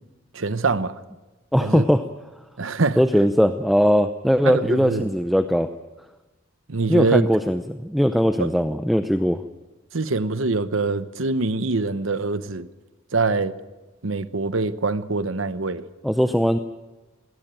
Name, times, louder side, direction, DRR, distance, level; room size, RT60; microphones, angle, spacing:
voice 1, 0.3-1.0 1.6-1.8 2.6-3.0 4.4-5.1 6.7-7.2 8.4-8.5 9.9-12.7 13.1-13.5 14.0-15.8, right 3 dB, 80° right, 1.0 m, -24 dB
voice 2, 1.5-2.0 3.0-5.7 6.9-9.4 16.0-16.6, equal, ahead, 0.6 m, -20 dB
20.5 x 18.0 x 9.1 m
head